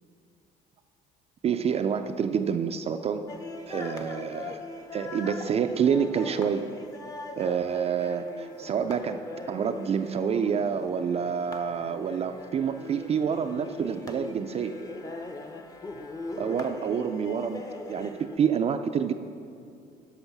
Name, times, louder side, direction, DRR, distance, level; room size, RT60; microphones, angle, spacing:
voice 1, 1.4-3.3 3.7-4.6 4.9-6.7 7.4-14.7 16.4-19.1, right 7 dB, 40° right, 7 dB, 0.4 m, -28 dB
sound 1, 3.3-18.4, left 2 dB, 20° left, 0.7 m, -41 dB
9.9 x 6.2 x 5.9 m, 2.4 s
cardioid pair, 110°, 17 cm